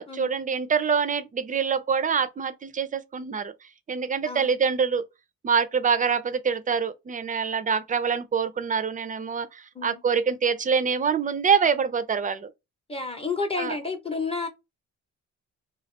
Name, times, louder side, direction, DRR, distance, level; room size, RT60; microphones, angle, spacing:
voice 1, 0.0-3.5 3.9-5.0 5.4-12.5 13.6-13.8, right 6 dB, 25° right, 0.5 m, -25 dB
voice 2, 12.9-14.5, left 4 dB, 20° left, 0.7 m, -30 dB
2.9 x 2.4 x 3.0 m
cardioid pair, 90°, 30 cm